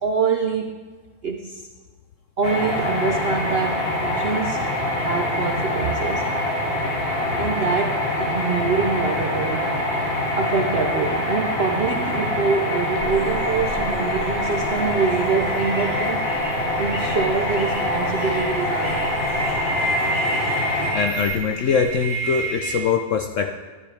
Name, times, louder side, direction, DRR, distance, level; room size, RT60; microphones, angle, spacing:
voice 1, 0.0-0.8 1.2-1.7 2.4-6.3 7.4-9.9 10.3-19.2, right 5 dB, 65° right, 3 dB, 0.6 m, -25 dB
sound 1, 2.4-20.9, left 1 dB, 35° left, 2.0 m, -25 dB
sound 2, 13.0-22.8, right 2 dB, 15° left, 3.3 m, -30 dB
voice 2, 20.9-23.6, left 6 dB, 70° left, 6 dB, 0.7 m, -22 dB
13.0 x 11.0 x 3.3 m, 1.4 s
omnidirectional pair, 1.8 m